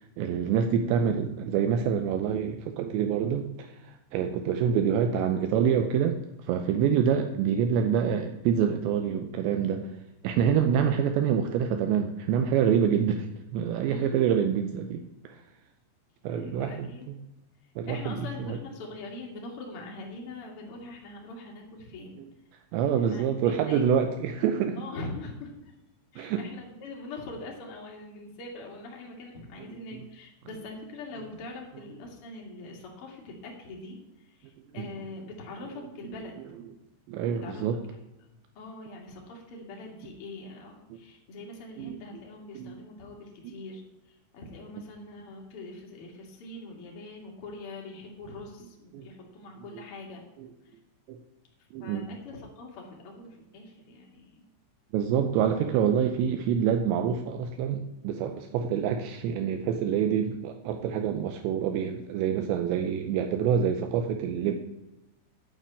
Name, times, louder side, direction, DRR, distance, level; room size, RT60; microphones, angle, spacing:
voice 1, 0.2-6.2 6.5-9.8 10.2-13.3 13.5-15.4 16.2-16.9 17.8-18.2 18.5-18.6 22.7-24.8 26.2-26.4 34.8-34.9 37.1-37.8 41.8-42.0 42.6-42.8 48.9-49.0 51.1-51.2 51.7-52.1 54.9-64.6, right 8 dB, 85° right, 6 dB, 2.5 m, -26 dB
voice 2, 13.8-14.4 16.3-17.1 17.9-22.2 22.9-23.8 24.8-25.7 26.1-36.4 37.3-37.7 38.0-38.1 38.5-50.2 50.6-50.8 51.8-54.4, left 2 dB, 90° left, 0 dB, 1.2 m, -43 dB
9.5 x 6.7 x 8.3 m, 0.94 s
omnidirectional pair, 5.9 m